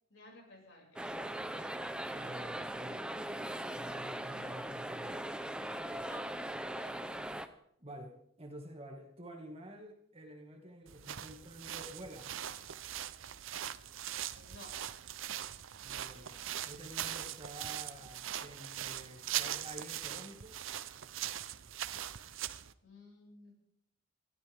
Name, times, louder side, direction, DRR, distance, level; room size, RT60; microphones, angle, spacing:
voice 1, 0.1-1.4 6.1-6.2 6.8-7.1 14.3-14.7 22.8-23.5, left 2 dB, 60° left, 0 dB, 6.3 m, -55 dB
sound 1, 1.0-7.5, right 1 dB, 5° right, 0.7 m, -40 dB
voice 2, 2.1-3.0 3.7-5.3 7.8-12.3 15.8-16.4 16.6-20.6, right 1 dB, 30° right, 3 dB, 2.1 m, -49 dB
sound 2, 10.9-22.7, right 11 dB, 65° right, 0.7 m, -41 dB
22.5 x 15.5 x 3.6 m, 0.73 s
head